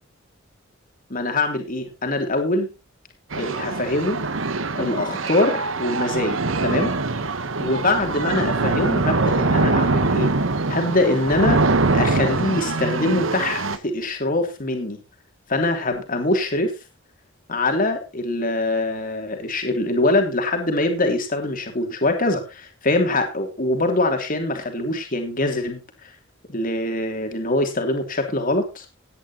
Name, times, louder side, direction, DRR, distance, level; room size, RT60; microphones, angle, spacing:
voice 1, 1.1-2.7 3.3-4.2 4.7-6.9 7.6-10.3 10.7-11.6 11.9-15.0 15.5-16.7 17.5-26.1 26.5-28.8, left 2 dB, 45° left, 4 dB, 3.0 m, -23 dB
sound 1, 3.3-13.8, right 3 dB, 75° right, 1.2 m, -23 dB
18.0 x 10.0 x 2.9 m, 0.27 s
head